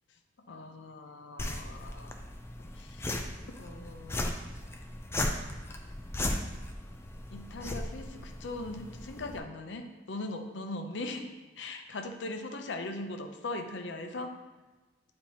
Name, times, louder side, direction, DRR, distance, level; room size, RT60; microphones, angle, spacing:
voice 1, 0.5-2.1 2.7-3.2 3.6-4.4 7.3-11.3 11.6-14.4, left 2 dB, 70° left, 5 dB, 0.6 m, -40 dB
sound 1, 1.4-9.4, left 1 dB, 15° left, 0.4 m, -37 dB
9.0 x 4.3 x 2.8 m, 1.2 s
head